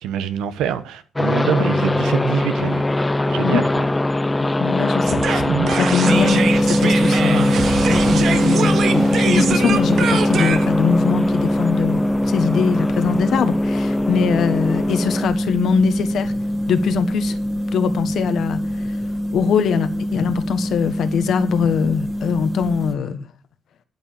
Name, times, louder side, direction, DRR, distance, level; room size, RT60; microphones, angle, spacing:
voice 1, 0.0-2.8 3.3-3.6, right 9 dB, 90° right, 1.1 m, -25 dB
sound 1, 1.2-15.3, left 2 dB, 15° left, 0.6 m, -23 dB
voice 2, 4.4-5.4 5.7-12.0 12.3-16.3 16.7-17.3 17.7-19.0 19.3-23.3, left 6 dB, 70° left, 1.4 m, -22 dB
sound 2, 5.1-12.2, right 6 dB, 60° right, 1.2 m, -24 dB
sound 3, 6.0-22.9, equal, 15° right, 1.7 m, -22 dB
12.0 x 5.7 x 7.2 m
cardioid pair, 90°, 0 cm